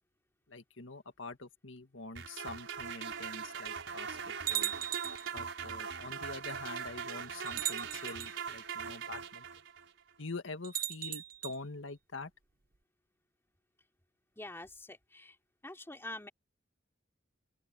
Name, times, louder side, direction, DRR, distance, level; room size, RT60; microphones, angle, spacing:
voice 1, 0.5-4.7 5.3-9.5 10.2-12.3, left 3 dB, 85° left, 1.8 m, -45 dB
sound 1, 2.2-9.9, right 6 dB, 75° right, 6.0 m, -41 dB
sound 2, 2.8-2.9 3.7-3.8 4.5-5.3 6.5-6.6 7.5-8.3 10.6-11.6, right 11 dB, 50° right, 0.8 m, -37 dB
voice 2, 14.4-15.3 15.6-16.3, left 1 dB, 15° left, 3.3 m, -45 dB
open air
head